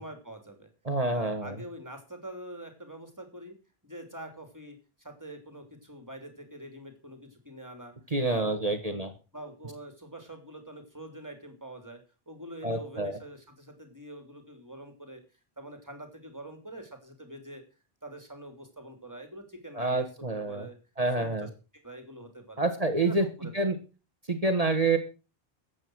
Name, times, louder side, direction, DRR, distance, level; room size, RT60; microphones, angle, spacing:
voice 1, 0.0-0.7 1.1-3.5 3.8-7.9 8.2-9.0 9.3-12.0 12.3-15.2 15.6-17.6 18.0-20.1 20.3-20.8 21.2-22.7 23.0-23.5, right 1 dB, 15° right, 6 dB, 3.3 m, -45 dB
voice 2, 0.8-1.6 8.1-9.1 12.6-13.2 19.7-20.7 21.0-21.5 22.6-23.3 23.5-23.7 24.3-25.0, right 2 dB, 35° right, 7 dB, 1.7 m, -27 dB
14.5 x 8.7 x 6.3 m, 0.34 s
omnidirectional pair, 1.1 m